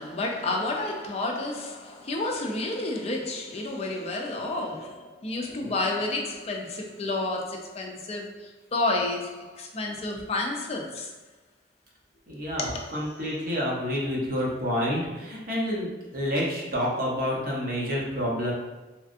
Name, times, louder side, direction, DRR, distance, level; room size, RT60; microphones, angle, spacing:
voice 1, 0.0-8.3 8.7-11.1 12.6-12.8, left 2 dB, 35° left, 0.4 m, -30 dB
voice 2, 12.3-18.5, equal, 55° right, 0.8 m, -29 dB
3.2 x 2.5 x 2.5 m
head